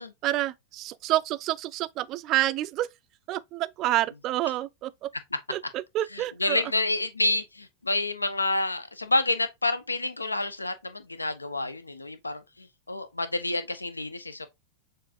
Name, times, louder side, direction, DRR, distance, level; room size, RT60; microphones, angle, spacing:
voice 1, 0.2-2.9 3.3-5.1 5.5-6.6, right 15 dB, 35° right, 0.3 m, -28 dB
voice 2, 6.1-14.5, left 2 dB, 80° left, 0.4 m, -29 dB
6.6 x 2.5 x 2.7 m
figure-of-eight pair, 90°, 0 cm